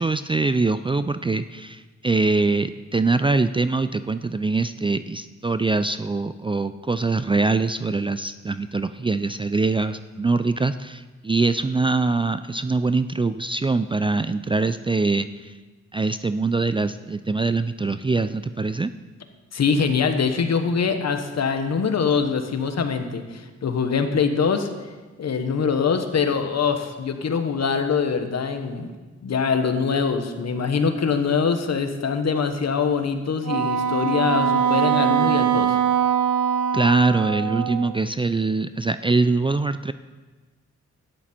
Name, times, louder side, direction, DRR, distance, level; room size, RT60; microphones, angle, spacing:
voice 1, 0.0-15.5 15.9-18.9 36.7-39.9, right 3 dB, 20° right, 12 dB, 0.4 m, -23 dB
voice 2, 19.5-24.7 25.2-28.9 29.2-35.7, left 5 dB, 60° left, 7 dB, 1.2 m, -23 dB
Wind instrument woodwind instrument, 33.4-37.9, right 8 dB, 85° right, 0.8 m, -22 dB
12.5 x 10.0 x 4.4 m, 1.3 s
cardioid pair, 65°, 29 cm